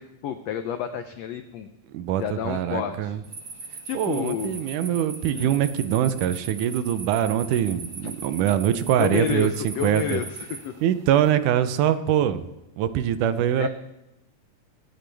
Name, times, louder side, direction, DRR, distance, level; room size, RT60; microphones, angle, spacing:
voice 1, 0.0-1.7 2.2-3.1 3.8-4.6 5.3-5.5 8.0-8.1 9.0-10.7 13.6-13.7, left 9 dB, 75° left, 7 dB, 1.6 m, -30 dB
voice 2, 1.9-3.2 3.9-10.2 10.8-12.4 12.8-13.7, right 10 dB, 85° right, 11 dB, 2.2 m, -23 dB
sound 1, 3.2-11.3, right 4 dB, 40° right, 1.3 m, -39 dB
25.5 x 9.1 x 3.4 m, 0.92 s
omnidirectional pair, 3.5 m